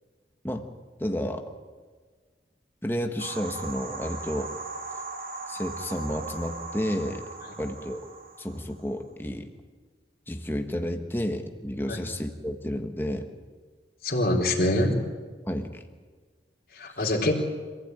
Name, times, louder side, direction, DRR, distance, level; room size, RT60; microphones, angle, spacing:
voice 1, 1.0-1.5 2.8-4.5 5.5-7.2 7.6-8.1 8.4-9.5 10.3-13.3 15.5-15.7, equal, 10° left, 5 dB, 1.5 m, -31 dB
sound 1, 3.2-8.9, right 3 dB, 50° right, 2.9 m, -38 dB
voice 2, 14.0-14.9 16.8-17.3, left 1 dB, 55° left, -1 dB, 3.8 m, -24 dB
26.0 x 16.0 x 9.1 m, 1.5 s
head